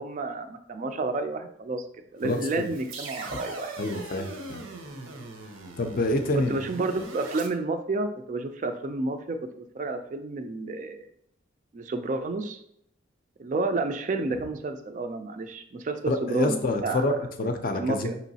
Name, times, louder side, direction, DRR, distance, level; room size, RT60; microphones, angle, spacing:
voice 1, 0.0-1.8 2.1-3.7 6.3-11.1 11.7-12.6 13.4-17.0 17.8-18.2, right 3 dB, 40° right, 7 dB, 0.3 m, -30 dB
voice 2, 2.2-2.7 3.8-4.6 5.8-6.5 16.1-18.2, left 2 dB, 45° left, 6 dB, 0.4 m, -27 dB
sound 1, 2.2-7.5, right 3 dB, 90° right, 0.7 m, -40 dB
5.4 x 2.9 x 2.7 m, 0.70 s
head